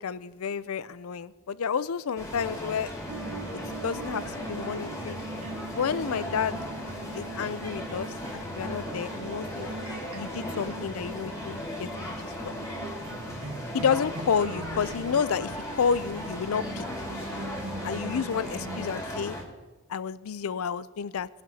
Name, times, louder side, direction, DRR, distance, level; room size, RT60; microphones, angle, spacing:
voice 1, 0.0-2.9 3.5-5.2 5.7-6.6 7.1-9.8 10.1-12.5 13.7-16.9 17.8-19.4 19.9-21.3, left 6 dB, 75° left, 17 dB, 0.4 m, -30 dB
sound 1, 2.2-19.4, left 1 dB, 15° left, 2.2 m, -37 dB
sound 2, 3.1-18.9, right 2 dB, 90° right, 1.1 m, -41 dB
sound 3, 8.6-16.8, right 3 dB, 70° right, 1.6 m, -50 dB
21.0 x 11.0 x 2.8 m, 1.2 s
head